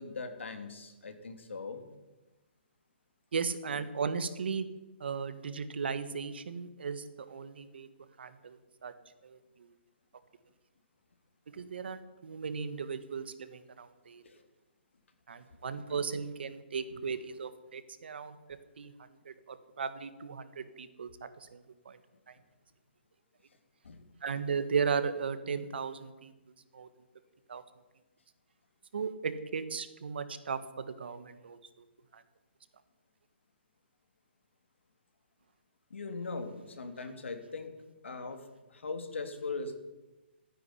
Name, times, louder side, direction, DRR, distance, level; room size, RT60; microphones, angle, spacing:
voice 1, 0.0-1.8 14.2-14.4 23.8-24.0 35.9-37.7 38.0-38.4 38.7-39.8, left 4 dB, 85° left, 7 dB, 2.8 m, -40 dB
voice 2, 3.3-4.6 5.0-7.9 8.2-8.9 9.2-9.4 11.5-14.2 15.3-18.4 18.8-18.9 19.2-21.1 21.4-21.6 21.8-22.0 24.2-26.3 26.7-26.9 27.5-27.6 28.9-31.6 32.1-32.2, right 5 dB, 60° right, 11 dB, 1.6 m, -36 dB
13.5 x 10.0 x 9.8 m, 1.1 s
hypercardioid pair, 170°, 6 cm